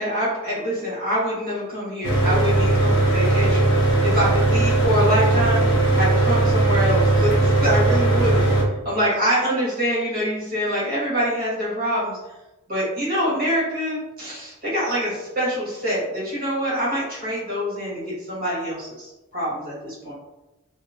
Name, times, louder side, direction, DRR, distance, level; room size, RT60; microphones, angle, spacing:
voice 1, 0.0-12.2 12.7-20.1, equal, 45° right, -8 dB, 1.3 m, -25 dB
Mechanical fan, 2.0-8.6, right 2 dB, 60° left, 0.6 m, -18 dB
2.8 x 2.0 x 2.6 m, 1.0 s
head